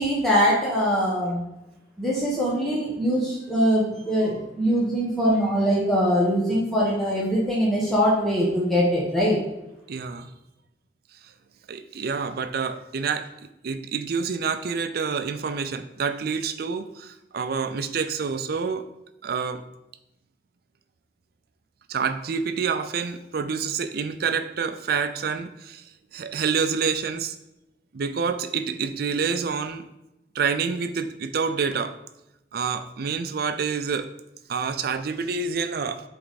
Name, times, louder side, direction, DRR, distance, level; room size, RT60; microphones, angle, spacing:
voice 1, 0.0-1.4 2.0-9.4, equal, ahead, -7 dB, 1.2 m, -22 dB
voice 2, 9.9-10.3 11.7-13.3 13.6-18.8 19.2-19.6 21.9-25.8 26.1-27.3 27.9-29.8 30.3-31.9 32.5-34.1 34.5-36.0, right 5 dB, 60° right, 10 dB, 0.4 m, -27 dB
7.7 x 3.4 x 4.1 m, 0.92 s
head